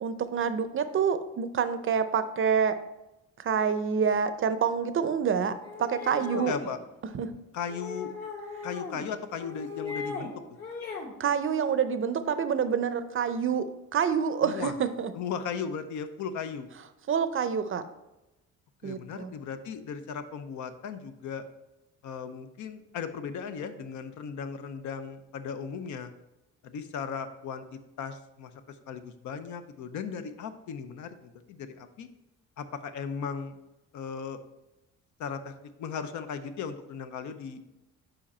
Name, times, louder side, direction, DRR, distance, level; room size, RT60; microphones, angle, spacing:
voice 1, 0.0-2.8 3.4-5.5 5.8-6.5 7.1-7.3 11.2-13.7 13.9-15.1 17.1-17.8 18.8-19.3, right 7 dB, 45° right, 11 dB, 0.5 m, -27 dB
sound 1, 5.6-6.7 7.7-9.0 9.4-10.3 10.6-11.1, left 4 dB, 55° left, 1.8 m, -38 dB
voice 2, 6.3-6.8 7.5-8.1 8.6-10.3 14.4-14.7 15.1-16.7 18.8-21.4 22.0-26.1 26.6-32.1 32.6-33.6 33.9-34.4 35.2-35.5 35.8-37.6, left 6 dB, 75° left, 9 dB, 0.6 m, -37 dB
5.1 x 4.9 x 4.2 m, 0.96 s
cardioid pair, 90°, 30 cm